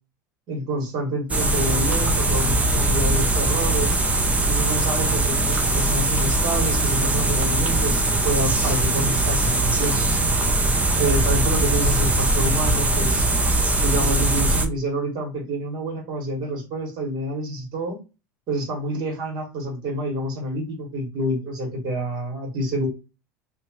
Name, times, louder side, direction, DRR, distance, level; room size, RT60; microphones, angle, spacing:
voice 1, 0.5-4.0 4.5-10.2 11.0-13.3 13.8-18.0 18.5-22.9, right 1 dB, 50° right, 2 dB, 1.6 m, -27 dB
sound 1, 1.3-14.7, right 2 dB, 15° right, 0.6 m, -21 dB
2.8 x 2.3 x 2.9 m, 0.29 s
hypercardioid pair, 85°, 10 cm